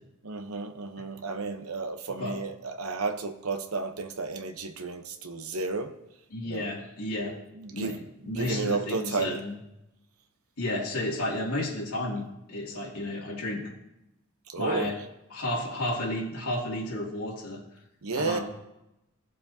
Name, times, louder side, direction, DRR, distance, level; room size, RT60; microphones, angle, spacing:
voice 1, 0.2-5.9 6.4-6.7 7.3-8.0 8.3-9.4 14.5-14.9 18.0-18.4, right 4 dB, 70° right, 7 dB, 1.0 m, -32 dB
voice 2, 6.3-7.3 7.7-8.0 8.2-9.5 10.6-13.7 14.6-15.0 15.3-17.6 18.1-18.4, left 1 dB, 85° left, -4 dB, 2.6 m, -32 dB
16.5 x 7.5 x 2.8 m, 0.90 s
head